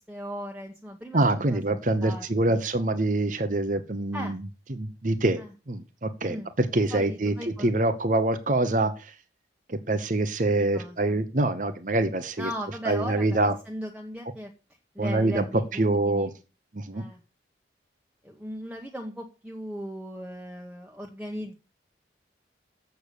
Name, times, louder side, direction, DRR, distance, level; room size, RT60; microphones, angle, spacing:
voice 1, 0.0-2.6 4.1-4.4 5.4-5.5 6.3-6.5 6.9-7.9 10.5-11.2 12.4-14.5 14.9-16.3 16.9-17.2 18.2-21.5, equal, 5° right, 1 dB, 1.0 m, -38 dB
voice 2, 1.1-4.4 4.7-5.4 5.7-9.1 9.7-12.5 12.8-13.5 15.0-15.4 15.7-16.3 16.7-17.0, right 2 dB, 45° right, 10 dB, 0.9 m, -25 dB
7.9 x 6.9 x 6.7 m, 0.31 s
head